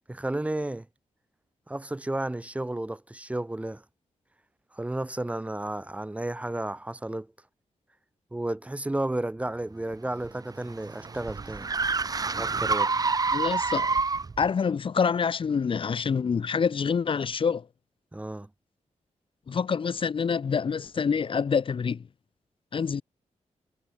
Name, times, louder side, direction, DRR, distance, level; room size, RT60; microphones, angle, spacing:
voice 1, 0.1-0.9 1.7-3.8 4.7-7.3 8.3-11.7 12.3-12.9 18.1-18.5, right 1 dB, 10° right, 2.6 m, -32 dB
sound 1, 9.9-14.5, right 4 dB, 30° right, 3.1 m, -28 dB
voice 2, 13.3-14.0 14.4-17.7 19.5-22.0 22.7-23.0, left 6 dB, 45° left, 1.7 m, -26 dB
wide cardioid pair, 170°, 13 cm